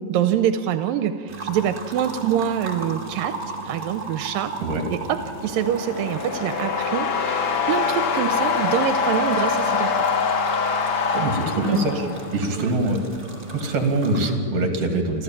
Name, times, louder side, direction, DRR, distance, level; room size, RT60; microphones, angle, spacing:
voice 1, 0.1-3.4 3.6-4.5 4.9-9.9 11.1-11.2 11.7-11.9 12.6-12.7, right 9 dB, 85° right, 9 dB, 2.4 m, -25 dB
sound 1, 1.3-14.3, right 4 dB, 25° right, 2.8 m, -36 dB
sound 2, 5.3-12.4, left 5 dB, 80° left, 0.9 m, -24 dB
voice 2, 11.2-11.9 12.3-13.0 13.5-15.2, right 2 dB, 45° right, 3 dB, 3.4 m, -23 dB
29.0 x 13.5 x 7.5 m, 2.6 s
omnidirectional pair, 4.0 m